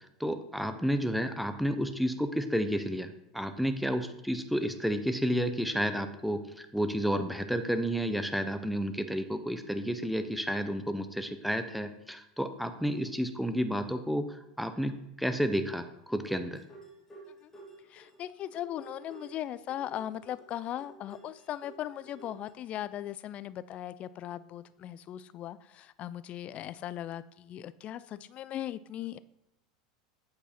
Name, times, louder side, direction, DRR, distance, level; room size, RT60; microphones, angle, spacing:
voice 1, 0.2-16.6, equal, ahead, 9 dB, 0.7 m, -31 dB
sound 1, 16.2-22.5, right 2 dB, 15° left, 2.0 m, -52 dB
voice 2, 17.9-29.2, left 12 dB, 40° left, 16 dB, 0.4 m, -38 dB
8.1 x 4.8 x 4.4 m, 0.83 s
hypercardioid pair, 95°, 3 cm